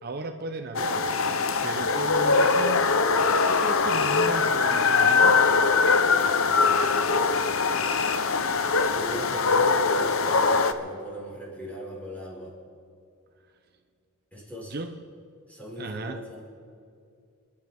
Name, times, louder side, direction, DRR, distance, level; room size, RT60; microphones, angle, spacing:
voice 1, 0.0-1.1 1.6-2.9 3.4-5.4 14.7-15.0 15.8-16.2, right 2 dB, 50° right, 6 dB, 0.7 m, -35 dB
sound 1, 0.7-10.7, left 4 dB, 80° left, 0.8 m, -22 dB
voice 2, 8.9-12.5 14.3-14.8 15.5-16.5, equal, 5° left, -5 dB, 4.9 m, -39 dB
28.5 x 11.5 x 3.5 m, 2.3 s
head